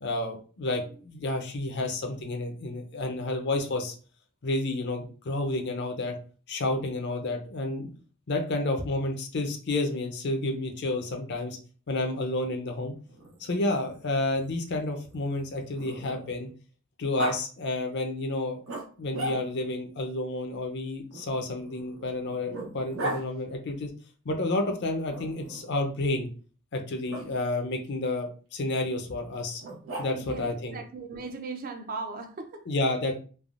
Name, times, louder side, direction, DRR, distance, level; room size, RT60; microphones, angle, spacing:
voice 1, 0.0-3.9 4.4-6.1 6.5-7.9 8.3-11.6 11.9-12.9 13.4-16.5 17.0-18.6 19.0-23.9 24.2-26.3 26.7-29.6 30.0-30.8 32.7-33.1, left 2 dB, 55° left, 0.5 m, -30 dB
Growling, 13.1-16.5 17.2-17.4 18.7-19.8 21.1-23.2 25.1-25.8 27.1-27.2 29.6-30.4, right 2 dB, 90° right, 0.9 m, -38 dB
voice 2, 30.2-32.7, right 3 dB, 45° right, 0.4 m, -38 dB
3.3 x 2.1 x 2.4 m
head